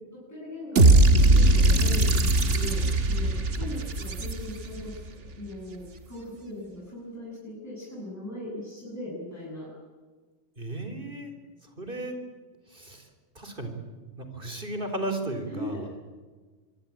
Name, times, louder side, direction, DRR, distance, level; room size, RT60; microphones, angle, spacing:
voice 1, 0.3-9.7 15.5-15.9, left 1 dB, 15° left, -7 dB, 7.9 m, -39 dB
sound 1, 0.8-4.9, right 2 dB, 75° right, 2.1 m, -20 dB
voice 2, 10.6-11.3 11.6-12.2 12.7-13.1 13.3-13.7 14.2-15.9, right 1 dB, 45° right, 6 dB, 4.2 m, -34 dB
25.5 x 22.0 x 8.9 m, 1.4 s
omnidirectional pair, 1.2 m